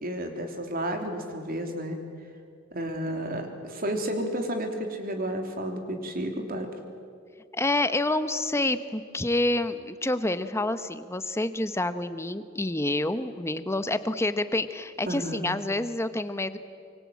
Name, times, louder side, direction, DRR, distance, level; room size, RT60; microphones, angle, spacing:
voice 1, 0.0-2.0 2.7-6.7 15.1-15.5, right 1 dB, 45° right, 4 dB, 3.2 m, -31 dB
voice 2, 7.5-16.6, left 2 dB, 15° left, 11 dB, 1.0 m, -28 dB
25.0 x 24.0 x 8.7 m, 2.2 s
head